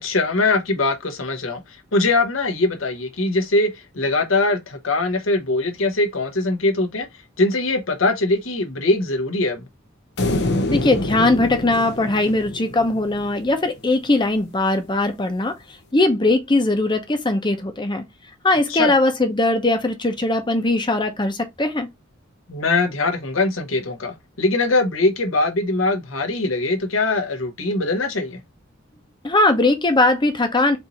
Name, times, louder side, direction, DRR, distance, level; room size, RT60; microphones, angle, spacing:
voice 1, 0.0-7.1 7.4-9.6 18.7-18.9 22.5-28.4, left 2 dB, 80° left, 1.1 m, -22 dB
sound 1, 10.2-13.6, left 2 dB, 60° left, 0.8 m, -26 dB
voice 2, 10.7-15.6 15.9-18.0 18.4-21.9 29.2-30.8, left 2 dB, 25° left, 0.8 m, -20 dB
4.5 x 2.7 x 4.0 m
head